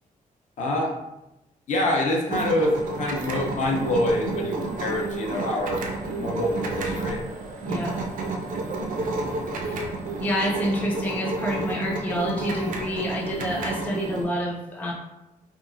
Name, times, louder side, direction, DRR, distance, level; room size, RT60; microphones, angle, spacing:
voice 1, 0.6-0.9 1.7-2.7 3.0-5.8 6.2-7.2, left 1 dB, 60° left, -1 dB, 0.6 m, -25 dB
sound 1, 2.3-14.3, right 3 dB, 70° right, 0.4 m, -31 dB
voice 2, 7.6-8.0 9.6-9.9 10.2-14.9, equal, 10° left, -3 dB, 0.3 m, -28 dB
2.9 x 2.4 x 2.4 m, 0.94 s
wide cardioid pair, 175°, 14 cm